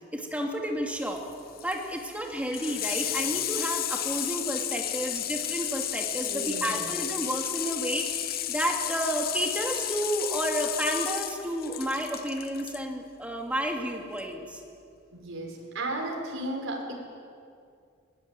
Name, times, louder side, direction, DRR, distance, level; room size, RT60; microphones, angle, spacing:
voice 1, 0.1-1.3 1.6-14.6, right 1 dB, 5° right, 1 dB, 2.6 m, -31 dB
Water tap faucet / Sink (filling or washing), 1.0-12.8 14.1-14.2, left 12 dB, 45° left, 0.9 m, -33 dB
voice 2, 6.2-6.9 15.1-16.9, right 1 dB, 85° right, 0 dB, 5.3 m, -34 dB
21.5 x 20.0 x 9.2 m, 2.3 s
head